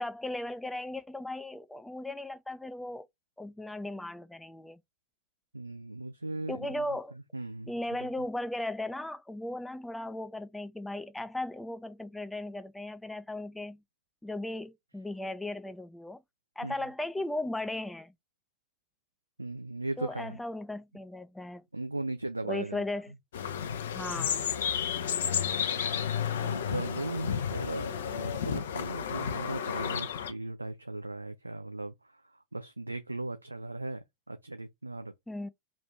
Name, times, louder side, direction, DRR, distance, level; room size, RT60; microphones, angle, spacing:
voice 1, 0.0-3.1 3.4-4.8 6.5-7.2 7.7-13.8 14.2-16.2 16.6-18.1 20.0-21.6 22.5-23.1 23.9-24.5 35.3-35.5, left 1 dB, 5° left, 0.4 m, -37 dB
voice 2, 5.5-6.7 7.3-7.7 16.6-16.7 19.4-20.4 21.7-22.8 26.3-35.1, right 2 dB, 85° right, 0.4 m, -37 dB
sound 1, 23.3-30.3, left 8 dB, 60° left, 0.5 m, -32 dB
3.1 x 2.5 x 4.2 m
figure-of-eight pair, 90°, 0 cm